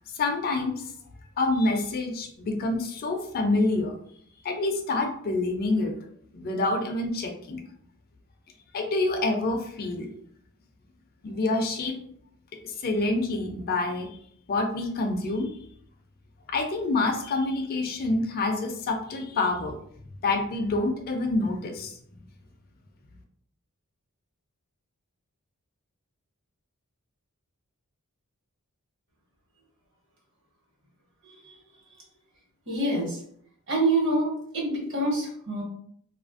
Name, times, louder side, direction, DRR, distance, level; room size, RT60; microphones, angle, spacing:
voice 1, 0.2-0.7 1.4-3.9 4.4-5.9 6.3-7.6 8.7-10.1 11.2-12.0 12.8-14.1 14.5-15.5 16.5-19.8 20.2-22.0, left 2 dB, 45° left, 4 dB, 0.4 m, -27 dB
voice 2, 32.7-33.2 33.7-35.6, right 2 dB, 60° right, -3 dB, 1.2 m, -26 dB
2.6 x 2.4 x 2.4 m, 0.65 s
head